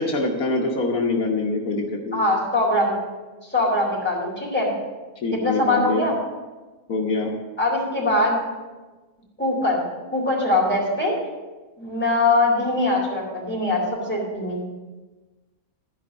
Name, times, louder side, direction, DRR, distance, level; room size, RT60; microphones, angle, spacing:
voice 1, 0.0-2.3 5.2-6.1 6.9-7.3, left 3 dB, 75° left, 0 dB, 1.7 m, -24 dB
voice 2, 2.1-3.0 3.5-4.7 5.4-6.2 7.6-8.4 9.4-9.8 10.1-11.1 11.8-13.8 14.1-14.6, left 2 dB, 5° left, -4 dB, 4.2 m, -22 dB
13.5 x 5.3 x 7.3 m, 1.2 s
omnidirectional pair, 1.6 m